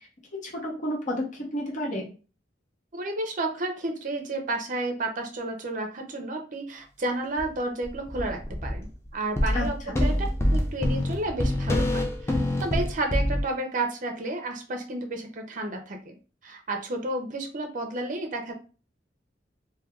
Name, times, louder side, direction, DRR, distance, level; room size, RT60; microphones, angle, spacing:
voice 1, 0.4-2.1 9.5-10.0, left 1 dB, 45° left, -2 dB, 0.9 m, -31 dB
voice 2, 2.9-10.2 10.5-16.2 16.4-18.5, right 2 dB, 45° right, 4 dB, 0.6 m, -31 dB
sound 1, 7.4-7.5 7.8-8.9 9.4-13.4, left 1 dB, 15° left, 0.3 m, -26 dB
3.2 x 2.2 x 2.3 m, 0.35 s
head